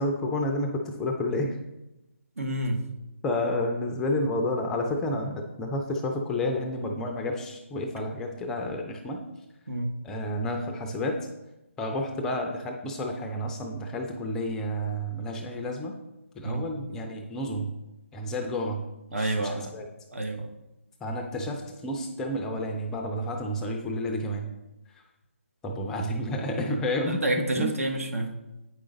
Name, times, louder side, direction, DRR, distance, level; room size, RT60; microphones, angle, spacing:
voice 1, 0.0-1.5 3.2-9.2 10.0-11.2 11.8-15.9 16.4-17.7 18.1-18.8 19.1-19.9 21.0-24.5 25.6-27.7, left 1 dB, 5° left, 2 dB, 0.4 m, -30 dB
voice 2, 2.4-2.8 9.7-9.9 16.4-16.6 19.1-19.7 20.1-20.5 27.1-28.3, right 1 dB, 75° right, 4 dB, 1.2 m, -28 dB
8.5 x 4.9 x 3.9 m, 0.96 s
figure-of-eight pair, 155°, 7 cm